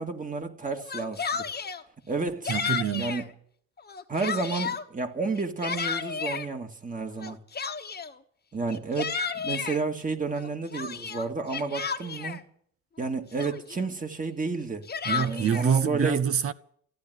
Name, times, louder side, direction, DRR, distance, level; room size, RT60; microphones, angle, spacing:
voice 1, 0.0-1.5 2.1-2.6 3.0-3.3 4.1-7.4 8.5-12.4 13.0-16.3, right 4 dB, 25° right, 2.0 m, -31 dB
Yell, 0.8-1.8 2.4-3.2 3.8-4.8 5.3-6.5 7.2-8.2 8.7-9.8 10.3-12.4 13.0-13.1 13.4-13.9 14.6-15.7, left 6 dB, 30° left, 1.3 m, -32 dB
voice 2, 2.5-3.1 15.1-16.5, right 7 dB, 50° right, 0.7 m, -26 dB
15.0 x 9.8 x 9.3 m
cardioid pair, 90°, 30 cm